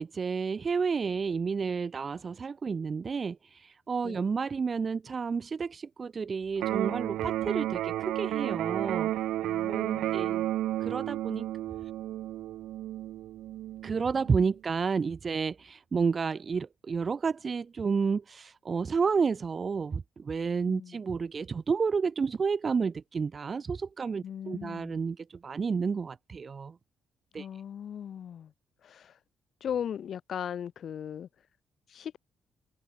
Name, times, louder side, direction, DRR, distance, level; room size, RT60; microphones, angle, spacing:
voice 1, 0.0-9.1 9.7-10.4 10.8-11.5 13.8-26.8 27.3-27.5, right 5 dB, 40° right, 1.3 m, -31 dB
Electric guitar, 6.6-14.6, right 14 dB, 85° right, 0.9 m, -32 dB
voice 2, 9.4-10.5 20.7-21.0 24.2-25.0 27.4-28.5 28.8-29.2 29.6-31.3 31.9-32.2, left 9 dB, 60° left, 1.8 m, -38 dB
cardioid pair, 90°, 0 cm